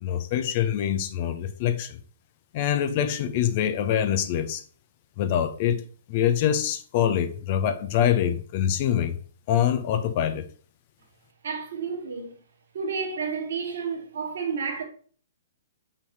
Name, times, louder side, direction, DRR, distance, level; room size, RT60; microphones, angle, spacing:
voice 1, 0.0-2.0 2.5-4.6 5.2-9.2 9.5-10.5, left 10 dB, 40° left, 0.8 m, -25 dB
voice 2, 11.4-12.3 12.7-14.8, right 5 dB, 55° right, 2.2 m, -31 dB
6.6 x 5.7 x 4.7 m
figure-of-eight pair, 115°, 0 cm